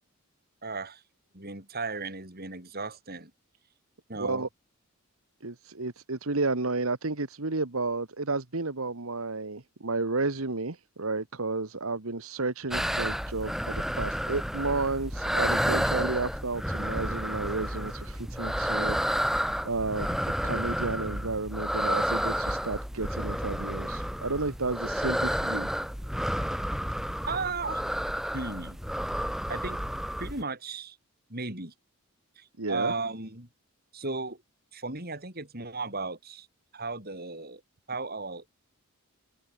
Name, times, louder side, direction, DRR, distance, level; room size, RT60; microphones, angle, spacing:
voice 1, 0.6-1.0 1.3-3.3 4.1-4.5 27.3-27.8 28.3-28.8 29.5-29.8 30.2-31.0 31.3-31.7 32.4-33.5 33.9-34.4 34.7-36.5 36.7-37.6 37.9-38.6, right 3 dB, 45° right, 6.5 m, -35 dB
voice 2, 4.2-4.5 5.4-19.0 19.6-25.7 32.6-32.9, right 3 dB, 70° right, 1.6 m, -32 dB
sound 1, 12.7-30.4, equal, ahead, 4.7 m, -31 dB
open air
head